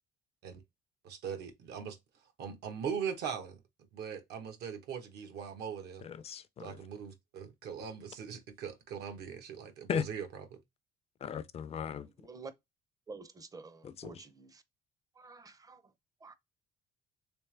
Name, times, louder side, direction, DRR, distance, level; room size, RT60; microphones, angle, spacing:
voice 1, 1.0-2.0 2.4-3.6 3.9-6.0 6.6-10.5, right 7 dB, 75° right, 1.0 m, -40 dB
voice 2, 6.0-6.8 9.9-10.1 11.2-12.1 13.8-14.1, left 7 dB, 35° left, 0.4 m, -37 dB
voice 3, 12.2-12.5 13.1-14.6 15.2-15.8 16.2-16.3, right 4 dB, 20° right, 0.6 m, -49 dB
3.3 x 3.0 x 3.2 m
cardioid pair, 110°, 17 cm